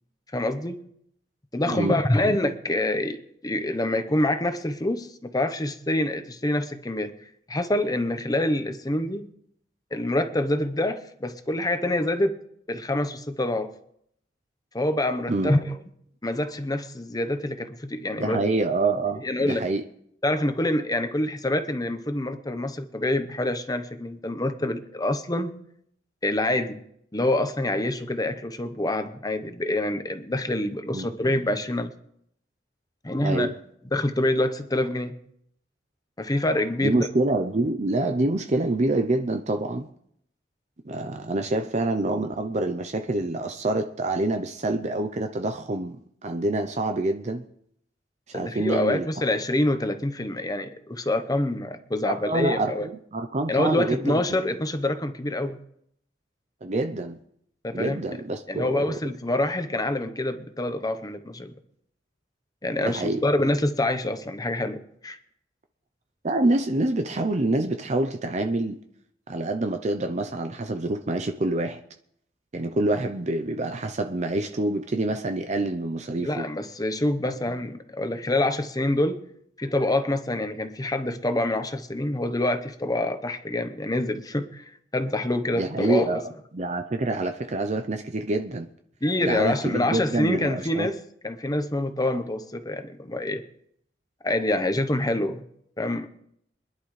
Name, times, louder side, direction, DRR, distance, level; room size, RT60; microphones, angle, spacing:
voice 1, 0.3-0.8 1.5-3.2 3.4-7.1 7.5-9.3 9.9-12.4 12.7-13.7 14.7-15.7 16.2-18.4 19.2-19.6 20.2-25.5 26.2-26.8 27.1-31.9 33.0-33.5 33.9-35.1 36.2-37.1 48.3-52.9 53.5-55.6 57.6-58.0 58.5-61.5 62.6-65.2 76.2-79.2 79.6-84.6 84.9-86.2 89.0-91.0 91.2-93.4 94.2-95.4 95.8-96.1, left 1 dB, 20° left, 1.0 m, -26 dB
voice 2, 1.7-2.0 15.3-15.5 18.2-19.8 30.9-31.1 33.2-33.5 36.8-39.9 40.9-46.0 46.2-47.4 48.3-49.1 52.1-54.2 56.6-57.2 57.7-59.0 62.8-63.2 66.2-68.8 69.3-71.8 72.5-76.5 77.2-77.5 85.6-86.2 86.5-88.7 89.2-90.9, right 2 dB, 40° right, 0.7 m, -26 dB
25.5 x 11.0 x 3.3 m
head